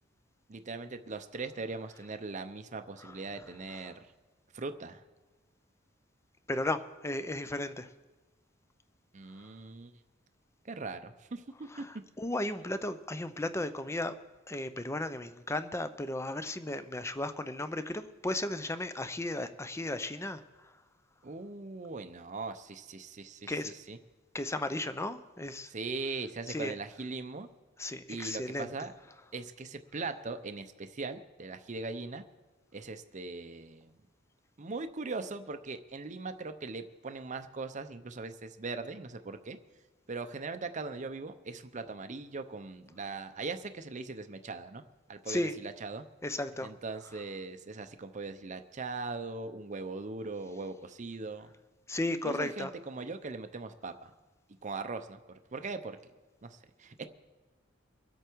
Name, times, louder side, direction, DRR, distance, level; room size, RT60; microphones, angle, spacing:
voice 1, 0.5-3.9 4.5-5.0 9.1-9.9 10.6-11.8 21.2-24.0 25.6-27.5 28.1-28.9 29.3-32.2 32.7-34.0 34.6-39.6 40.1-44.8 45.1-46.0 46.6-51.5 52.1-54.1 54.6-56.0 56.4-57.1, right 3 dB, 40° right, 8 dB, 0.7 m, -40 dB
voice 2, 6.5-7.9 12.2-14.1 14.5-20.4 23.5-23.7 24.3-25.7 26.5-26.7 27.8-28.7 45.3-45.5 46.2-46.7 51.9-52.7, left 1 dB, 15° left, 11 dB, 0.6 m, -34 dB
24.0 x 8.2 x 4.6 m, 1.2 s
head